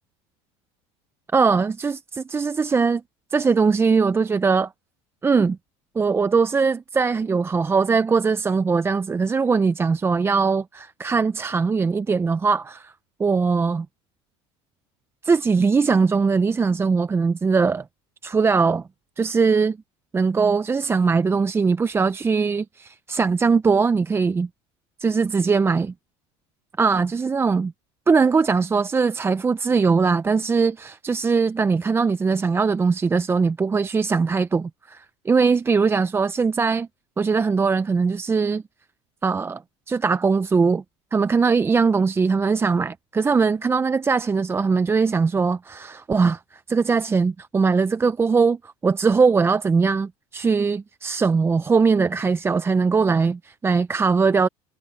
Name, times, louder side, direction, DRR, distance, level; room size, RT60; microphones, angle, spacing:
voice 1, 1.3-3.0 3.3-4.7 5.2-5.6 6.0-12.9 13.2-13.9 15.2-17.8 18.2-18.8 19.2-19.8 20.1-24.5 25.0-25.9 26.8-27.7 28.1-36.9 37.2-38.6 39.2-39.6 39.9-40.8 41.1-54.5, right 5 dB, 15° right, 0.5 m, -21 dB
supercardioid pair, 110°, 14 cm